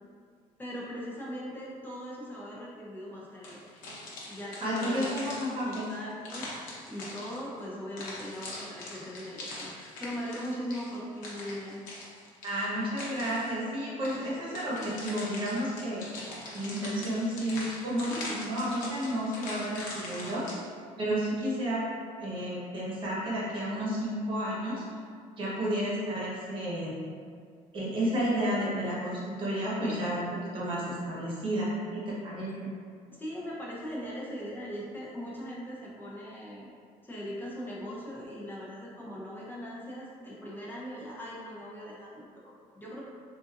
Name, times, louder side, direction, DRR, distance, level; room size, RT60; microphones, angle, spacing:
voice 1, 0.6-3.8 4.3-5.4 5.6-6.5 6.9-11.8 14.2-14.3 29.8-30.0 30.7-30.8 33.1-36.7 37.0-43.1, equal, 15° left, -5 dB, 0.8 m, -40 dB
sound 1, 3.4-7.6 8.0-13.6 14.0-20.6, left 2 dB, 75° left, 0.9 m, -42 dB
voice 2, 4.6-5.9 12.4-16.0 16.5-20.4 21.0-21.8 22.2-24.8 25.4-27.0 27.7-32.7, equal, 35° right, -7 dB, 1.2 m, -31 dB
4.0 x 2.6 x 2.5 m, 2.1 s
cardioid pair, 120°, 14 cm